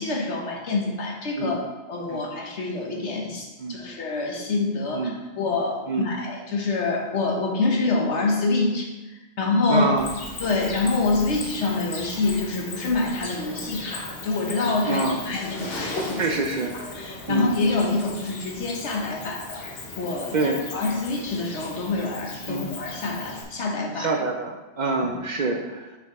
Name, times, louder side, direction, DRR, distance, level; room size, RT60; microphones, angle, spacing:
voice 1, 0.0-8.9 9.4-9.9 10.4-16.3 16.9-19.6 20.0-20.3 20.7-24.1, left 3 dB, 85° left, 0 dB, 1.3 m, -26 dB
voice 2, 9.7-10.1 14.9-15.2 16.2-16.8 17.3-17.5 20.3-20.6 22.5-22.7 24.0-26.0, right 3 dB, 55° right, 3 dB, 0.6 m, -26 dB
Cricket, 10.0-23.4, left 2 dB, 60° left, 1.2 m, -37 dB
6.3 x 4.4 x 4.1 m, 1.1 s
omnidirectional pair, 1.2 m